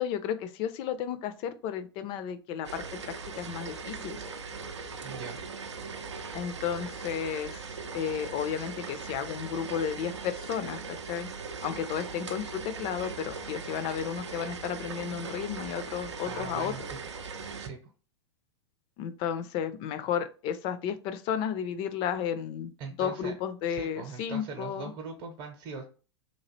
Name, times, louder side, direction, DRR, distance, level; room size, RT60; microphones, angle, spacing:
voice 1, 0.0-4.2 6.3-7.7 7.9-11.3 11.6-16.7 19.0-22.7 23.0-24.9, left 8 dB, 35° left, 11 dB, 0.4 m, -33 dB
sound 1, 2.6-17.7, right 5 dB, 85° right, 0.5 m, -40 dB
voice 2, 5.0-5.4 16.2-17.0 17.6-17.8 22.8-23.3 23.7-25.8, right 5 dB, 40° right, 3 dB, 0.7 m, -40 dB
2.9 x 2.5 x 2.8 m, 0.35 s
figure-of-eight pair, 95°, 15 cm